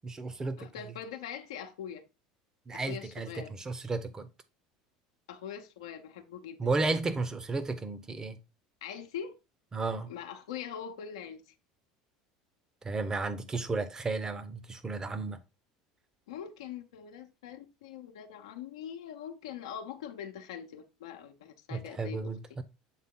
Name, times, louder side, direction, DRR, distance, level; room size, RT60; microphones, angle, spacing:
voice 1, 0.0-0.7 2.7-4.3 6.6-8.4 9.7-10.1 12.8-15.4 21.7-22.6, right 3 dB, 25° right, 1.0 m, -33 dB
voice 2, 0.6-2.0 2.7-3.5 5.3-6.6 8.8-9.3 10.1-11.5 16.3-22.2, left 8 dB, 85° left, 0.8 m, -42 dB
7.4 x 3.7 x 3.7 m
hypercardioid pair, 90°, 3 cm